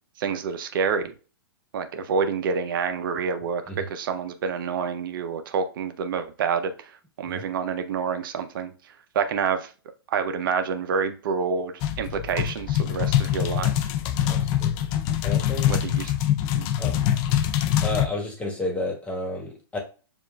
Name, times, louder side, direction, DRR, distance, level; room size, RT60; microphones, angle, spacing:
voice 1, 0.2-1.1 1.7-6.9 7.2-8.7 9.1-9.7 10.1-13.9 15.7-16.1 16.6-16.7, right 6 dB, 60° right, 9 dB, 0.5 m, -28 dB
sound 1, 11.8-18.1, left 11 dB, 35° left, 0.4 m, -24 dB
voice 2, 14.2-14.9 15.2-15.7 16.8-17.0 17.8-19.8, left 2 dB, 10° left, 0 dB, 1.3 m, -31 dB
7.0 x 2.4 x 2.2 m, 0.35 s
hypercardioid pair, 130°, 13 cm